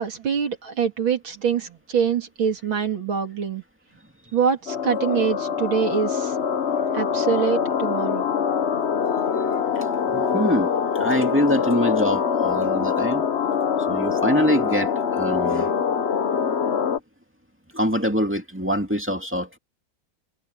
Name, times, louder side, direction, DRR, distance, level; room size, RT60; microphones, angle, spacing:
voice 1, 0.0-3.6 4.3-6.4 6.9-8.3, right 7 dB, 80° right, 3.5 m, -24 dB
sound 1, 4.7-17.0, left 7 dB, 45° left, 1.0 m, -24 dB
voice 2, 9.7-13.2 13.9-15.7 17.7-19.6, equal, 5° right, 2.2 m, -24 dB
omnidirectional pair, 2.1 m